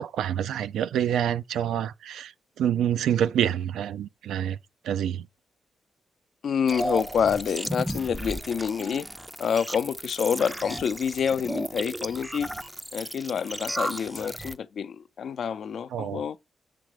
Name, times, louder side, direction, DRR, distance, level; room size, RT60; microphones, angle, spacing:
voice 1, 0.0-2.3 2.6-4.6 4.8-5.3 15.9-16.2, right 10 dB, 90° right, 0.3 m, -27 dB
voice 2, 6.4-9.1 9.4-12.5 12.9-16.4, left 7 dB, 70° left, 0.5 m, -27 dB
sound 1, 6.7-14.6, right 1 dB, 10° right, 0.4 m, -34 dB
7.6 x 3.1 x 4.9 m
cardioid pair, 60°, 0 cm